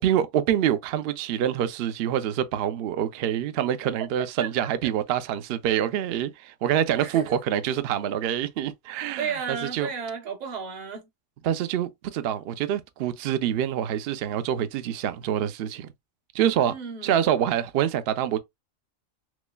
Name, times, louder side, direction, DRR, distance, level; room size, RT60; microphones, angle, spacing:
voice 1, 0.0-9.9 11.4-15.9 16.3-16.7 17.0-18.4, right 10 dB, 65° right, 0.6 m, -26 dB
voice 2, 7.0-7.4 9.2-11.1 16.7-17.2, right 6 dB, 35° right, 0.9 m, -33 dB
6.0 x 2.0 x 2.3 m
omnidirectional pair, 1.4 m